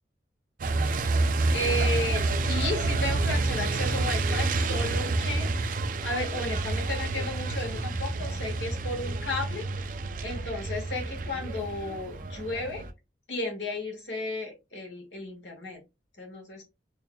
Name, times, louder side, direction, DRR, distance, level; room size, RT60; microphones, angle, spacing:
Truck, 0.6-12.9, right 3 dB, 45° right, 0.4 m, -28 dB
voice 1, 1.5-5.5 6.0-9.7 10.2-12.8 13.3-15.8 16.2-16.6, left 2 dB, 80° left, 1 dB, 1.6 m, -33 dB
5.4 x 2.8 x 2.2 m, 0.25 s
head